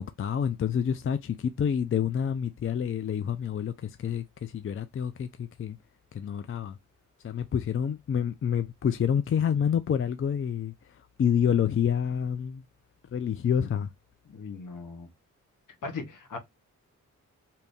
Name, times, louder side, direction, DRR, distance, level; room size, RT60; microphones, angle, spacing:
voice 1, 0.0-5.8 6.1-6.8 7.2-10.7 11.2-12.6 13.1-13.9, left 8 dB, 40° left, 0.4 m, -28 dB
voice 2, 14.2-15.1 15.8-16.4, left 4 dB, 70° left, 1.0 m, -38 dB
2.8 x 2.6 x 3.5 m
cardioid pair, 45°, 33 cm